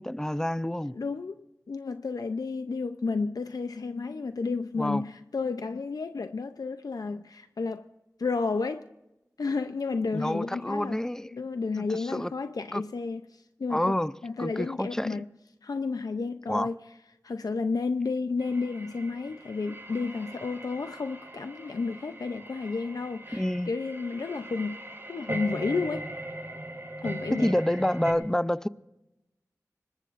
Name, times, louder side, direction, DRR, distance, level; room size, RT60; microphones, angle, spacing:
voice 1, 0.0-1.0 4.8-5.1 10.1-11.3 11.8-12.3 12.7-12.8 13.7-14.1 14.4-15.2 16.5-16.7 23.3-23.7 27.3-28.7, left 1 dB, 10° left, 0.5 m, -28 dB
voice 2, 0.9-7.9 8.2-8.9 9.4-11.0 11.3-13.9 14.2-15.3 15.6-16.8 17.2-24.8 25.1-26.1 27.0-27.5, left 4 dB, 80° left, 0.5 m, -31 dB
sound 1, 18.4-28.1, right 1 dB, 40° right, 3.8 m, -40 dB
25.5 x 21.0 x 2.5 m
wide cardioid pair, 55°, 6 cm